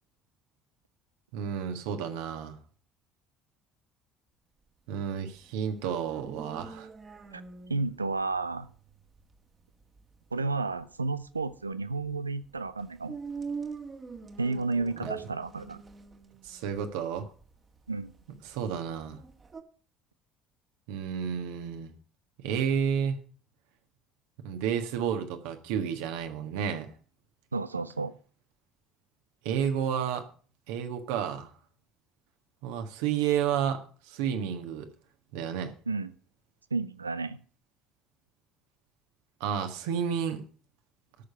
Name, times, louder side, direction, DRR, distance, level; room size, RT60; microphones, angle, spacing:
voice 1, 1.3-2.6 4.9-6.9 15.0-15.1 16.4-17.3 18.4-19.2 20.9-21.9 22.4-23.2 24.4-26.9 29.4-30.2 30.7-31.5 32.6-34.9 35.3-35.7 39.4-40.4, right 8 dB, 65° right, 7 dB, 1.5 m, -31 dB
sound 1, 5.3-19.6, right 5 dB, 30° right, 1.6 m, -44 dB
voice 2, 7.7-8.7 10.3-13.2 14.4-15.8 17.9-18.1 27.5-28.1 35.9-36.1 36.7-37.4, right 3 dB, 85° right, 14 dB, 0.6 m, -31 dB
12.5 x 6.6 x 6.8 m, 0.43 s
figure-of-eight pair, 60°, 0 cm